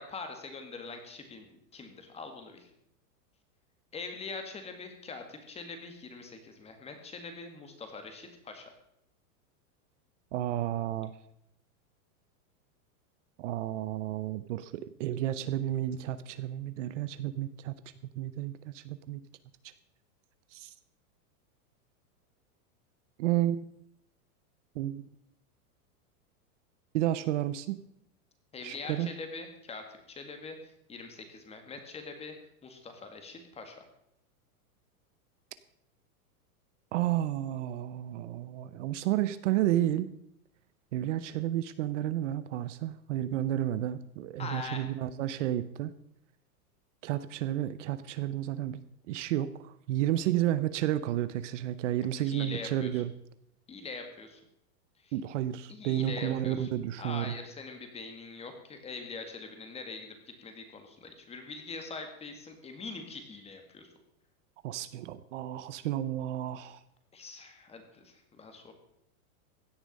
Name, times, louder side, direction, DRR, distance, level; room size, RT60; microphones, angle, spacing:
voice 1, 0.0-1.5 1.7-2.7 3.9-8.7 28.5-32.3 32.6-33.9 44.4-44.9 52.0-53.0 53.7-54.4 55.0-55.1 55.7-56.7 57.0-63.9 67.1-68.7, left 4 dB, 15° left, 6 dB, 1.8 m, -43 dB
voice 2, 10.3-11.1 13.4-17.8 18.2-19.2 20.5-20.7 23.2-23.7 24.7-25.0 26.9-27.8 28.6-29.1 36.9-40.1 40.9-45.9 47.0-48.8 49.1-53.1 55.1-57.4 64.6-66.8, right 13 dB, 55° right, 14 dB, 0.8 m, -31 dB
16.0 x 10.0 x 5.3 m, 0.75 s
supercardioid pair, 160°, 45 cm